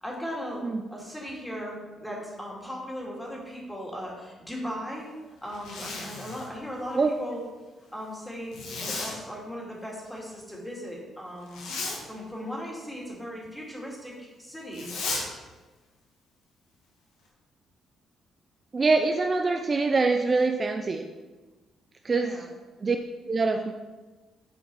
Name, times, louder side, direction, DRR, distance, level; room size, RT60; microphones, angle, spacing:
voice 1, 0.0-5.1 5.4-7.4 7.9-11.6 12.1-14.9 22.1-22.5, equal, 10° left, -3 dB, 2.4 m, -38 dB
Zipper (clothing), 5.5-6.5 8.5-9.2 11.5-12.0 14.7-15.3, left 3 dB, 90° left, 1.6 m, -34 dB
voice 2, 18.7-21.0 22.0-22.5 22.8-23.0 23.3-23.7, right 3 dB, 35° right, 4 dB, 0.5 m, -24 dB
8.3 x 4.7 x 4.7 m, 1.3 s
cardioid pair, 90°, 0 cm